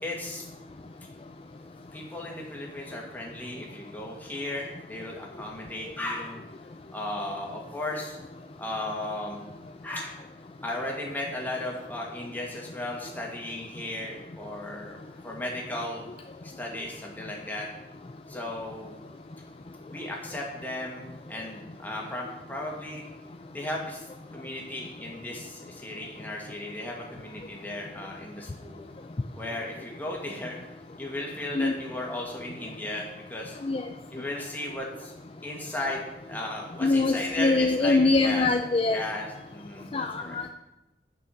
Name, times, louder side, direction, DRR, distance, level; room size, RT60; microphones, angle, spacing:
voice 1, 0.0-0.5 1.9-6.5 6.9-8.2 8.6-9.4 9.8-10.2 10.6-16.1 16.4-17.7 18.3-19.0 19.9-23.0 23.5-28.8 29.4-30.6 31.0-33.6 34.1-35.1 35.4-38.5 38.9-40.4, left 1 dB, 10° left, -2 dB, 2.0 m, -35 dB
voice 2, 36.8-39.0 39.9-40.5, left 3 dB, 30° left, 6 dB, 0.4 m, -23 dB
9.5 x 6.1 x 7.1 m, 1.0 s
head